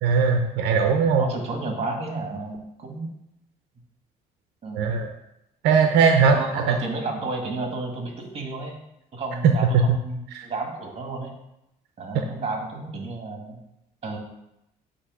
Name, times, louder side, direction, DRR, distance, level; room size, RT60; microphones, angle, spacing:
voice 1, 0.0-1.2 4.7-5.1 5.6-6.8 9.7-10.0 10.3-10.5, right 5 dB, 80° right, 4 dB, 0.7 m, -19 dB
voice 2, 1.2-3.1 4.6-4.9 6.2-8.8 9.1-11.4 12.0-13.6 14.0-14.2, right 3 dB, 35° right, 2 dB, 1.8 m, -32 dB
8.3 x 2.9 x 6.1 m, 0.86 s
cardioid pair, 110°, 17 cm